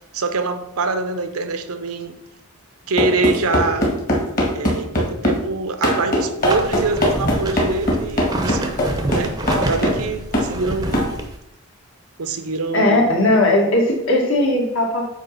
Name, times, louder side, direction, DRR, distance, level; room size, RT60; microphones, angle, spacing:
voice 1, 0.1-2.2 2.9-3.9 4.5-8.8 9.1-11.0 12.2-13.2, right 3 dB, 80° right, 0.7 m, -24 dB
sound 1, 3.0-5.4 5.8-10.1 10.3-10.5 10.9-11.1, equal, 40° left, 1.7 m, -20 dB
sound 2, 6.4-11.4, right 1 dB, 15° right, 0.6 m, -27 dB
voice 2, 12.7-15.0, left 1 dB, 60° left, 1.7 m, -17 dB
8.4 x 3.0 x 5.5 m
head